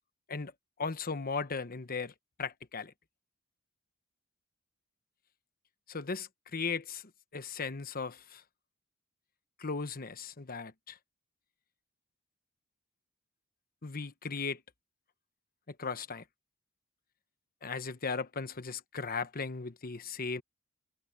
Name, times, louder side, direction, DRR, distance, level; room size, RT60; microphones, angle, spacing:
voice 1, 0.8-2.9 5.9-7.0 7.3-8.4 9.6-11.0 13.8-14.6 15.7-16.2 17.6-20.4, left 4 dB, 45° left, 1.1 m, -37 dB
head